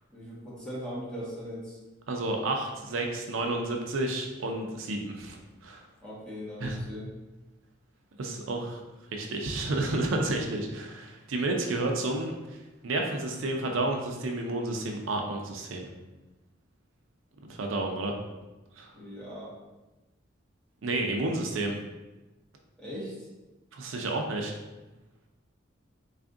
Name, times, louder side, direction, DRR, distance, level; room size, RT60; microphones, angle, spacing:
voice 1, 0.1-1.8 6.0-7.1 18.9-19.5 22.8-23.3, equal, 5° left, -9 dB, 1.1 m, -39 dB
voice 2, 2.1-5.4 5.6-5.8 6.6-6.8 8.2-8.8 9.1-12.4 12.8-15.9 17.5-18.2 18.8-18.9 20.8-21.7 23.7-24.5, right 2 dB, 80° right, 2 dB, 0.5 m, -30 dB
3.4 x 2.4 x 3.7 m, 1.1 s
head